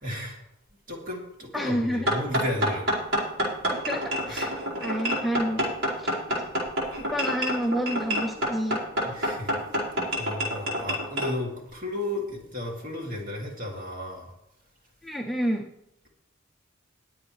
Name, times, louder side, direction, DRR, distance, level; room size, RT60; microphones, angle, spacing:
voice 1, 0.0-0.4 0.9-3.0 4.3-4.4 9.0-9.6 10.2-14.3, left 1 dB, 45° right, -1 dB, 2.8 m, -33 dB
voice 2, 1.5-2.1 3.7-5.7 6.0-6.2 7.0-8.8 15.0-15.7, equal, ahead, 0 dB, 0.7 m, -29 dB
sound 1, 2.1-11.3, equal, 90° right, 4.9 m, -27 dB
21.0 x 7.9 x 3.3 m, 0.82 s
head